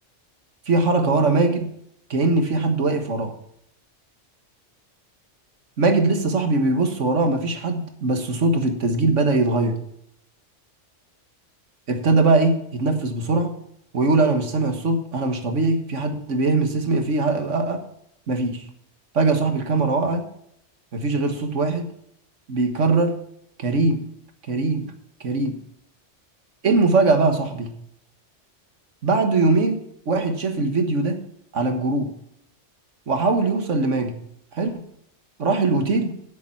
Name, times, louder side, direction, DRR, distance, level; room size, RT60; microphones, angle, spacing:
voice 1, 0.7-1.7 2.1-3.3 5.8-9.8 11.9-13.5 13.9-17.8 18.3-18.7 19.1-20.3 20.9-21.9 22.5-23.2 23.6-24.0 24.5-24.9 25.2-25.6 26.6-27.7 29.0-29.8 30.1-31.2 31.5-32.1 33.1-34.2 34.5-34.8 35.4-36.1, right 3 dB, 85° right, 6 dB, 1.8 m, -21 dB
9.5 x 8.9 x 5.7 m, 0.72 s
omnidirectional pair, 1.2 m